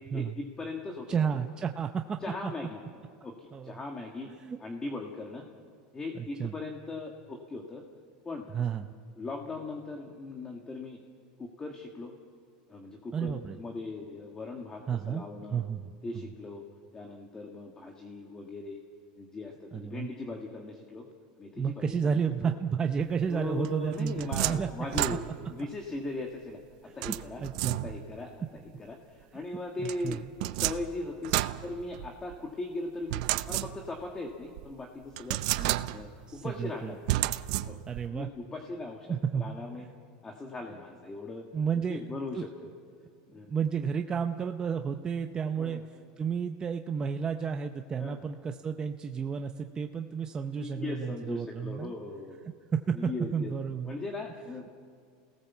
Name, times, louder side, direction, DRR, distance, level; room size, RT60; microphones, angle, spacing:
voice 1, 0.0-1.3 2.2-2.8 3.2-4.3 4.6-5.5 5.9-7.8 8.2-8.5 9.1-11.0 11.4-12.1 12.7-15.6 16.0-16.6 16.9-18.8 19.2-21.1 21.4-22.5 23.3-26.6 27.0-31.3 31.6-33.2 33.5-37.0 37.7-37.8 38.1-39.1 39.3-39.9 40.2-41.5 41.9-42.5 43.3-43.5 45.6-45.8 48.0-48.2 50.5-52.4 52.9-53.5 53.8-54.7, left 2 dB, 15° left, 2 dB, 1.7 m, -39 dB
voice 2, 1.1-2.2 2.4-2.5 3.5-3.8 4.3-4.6 6.2-6.5 8.5-8.9 13.1-13.6 14.9-15.2 15.5-15.9 19.7-20.1 21.6-24.7 24.9-25.0 27.1-27.9 29.8-30.2 36.3-37.3 37.9-38.3 39.1-39.6 41.5-42.5 43.5-45.8 46.2-51.9 52.9-53.9, right 6 dB, 20° right, 5 dB, 0.7 m, -32 dB
sound 1, 23.6-25.6 27.0-28.2 29.8-32.4 33.1-34.1 34.6-34.7 35.2-36.2 37.1-38.1, right 17 dB, 65° right, 0.7 m, -32 dB
29.0 x 18.0 x 7.2 m, 2.1 s
supercardioid pair, 145°, 4 cm